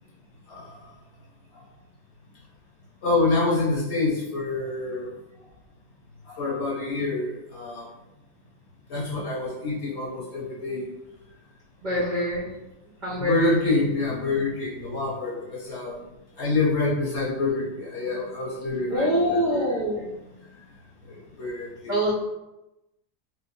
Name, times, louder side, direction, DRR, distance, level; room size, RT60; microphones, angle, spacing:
voice 1, 3.0-5.1 6.3-7.8 8.9-10.8 12.0-12.1 13.1-16.0 16.4-19.8 21.4-21.9, left 3 dB, 50° left, -6 dB, 0.9 m, -27 dB
voice 2, 11.8-12.5 13.0-13.8 18.9-20.1 21.9-22.1, equal, 75° right, -6 dB, 0.4 m, -25 dB
3.0 x 2.1 x 3.9 m, 0.97 s
omnidirectional pair, 1.8 m